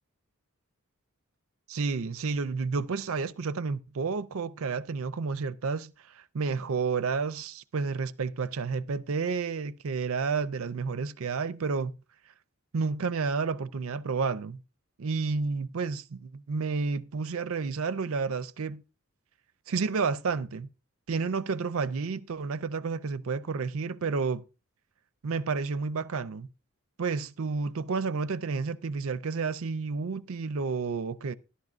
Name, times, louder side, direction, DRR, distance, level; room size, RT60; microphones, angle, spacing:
voice 1, 1.7-11.9 12.7-14.6 15.0-18.8 19.7-20.7 21.1-24.4 25.2-26.5 27.0-31.3, right 4 dB, 65° right, 0.5 m, -31 dB
13.0 x 11.5 x 2.4 m
head